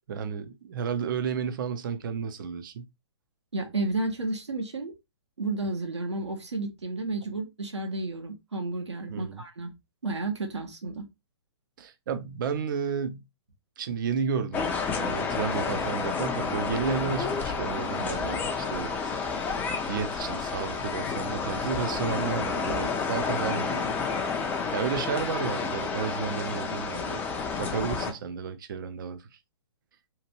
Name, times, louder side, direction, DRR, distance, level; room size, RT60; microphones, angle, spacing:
voice 1, 0.1-2.9 9.1-9.4 11.8-13.2 13.8-19.2 19.9-24.0 24.7-27.2 27.6-29.3, right 6 dB, 50° right, 0.5 m, -32 dB
voice 2, 3.5-4.9 5.4-9.7 10.0-11.1, right 2 dB, 80° right, 0.9 m, -32 dB
sound 1, 14.5-28.1, left 5 dB, 10° left, 0.4 m, -30 dB
2.9 x 2.4 x 2.8 m
figure-of-eight pair, 125°, 14 cm